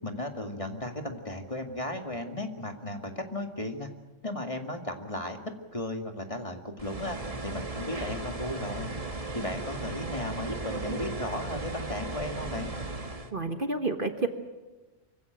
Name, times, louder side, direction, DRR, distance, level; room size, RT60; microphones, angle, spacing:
voice 1, 0.0-3.9 4.2-5.4 5.7-8.9 9.3-12.7, left 1 dB, 25° left, 4 dB, 2.1 m, -35 dB
sound 1, 6.8-13.3, right 2 dB, 30° right, 1.6 m, -36 dB
voice 2, 13.3-14.3, right 3 dB, 45° right, 7 dB, 1.5 m, -29 dB
24.5 x 16.0 x 9.0 m, 1.2 s
omnidirectional pair, 1.3 m